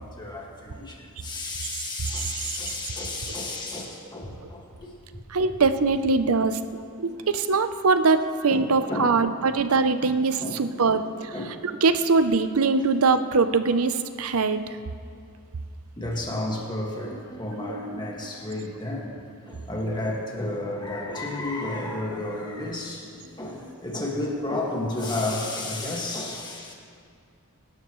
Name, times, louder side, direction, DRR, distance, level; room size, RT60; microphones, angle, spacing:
voice 1, 0.0-4.9 7.2-7.3 8.5-9.6 10.0-11.7 14.5-14.7 16.0-26.7, left 2 dB, 20° left, -2 dB, 1.9 m, -32 dB
voice 2, 5.3-6.6 7.0-11.1 11.8-14.6 17.7-17.8, right 4 dB, 70° right, 10 dB, 0.7 m, -22 dB
23.5 x 12.0 x 3.1 m, 2.3 s
head